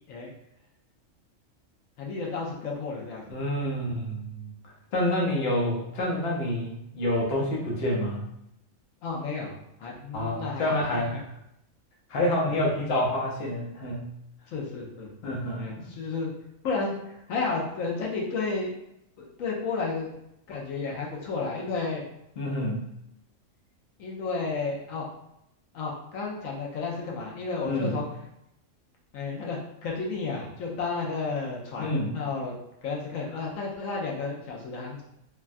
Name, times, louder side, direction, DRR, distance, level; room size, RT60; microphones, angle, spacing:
voice 1, 2.0-3.7 9.0-11.2 12.4-12.6 14.5-16.3 16.6-18.7 19.2-20.1 20.5-22.0 24.0-25.0 25.7-28.1 29.1-32.5 32.8-35.0, left 4 dB, 80° left, -2 dB, 1.1 m, -32 dB
voice 2, 3.3-4.5 4.9-8.2 10.1-11.2 12.1-14.1 15.2-15.8 22.4-22.9 27.6-27.9 31.8-32.1, left 1 dB, 55° left, -3 dB, 0.9 m, -28 dB
3.3 x 2.2 x 2.5 m, 0.79 s
omnidirectional pair, 1.4 m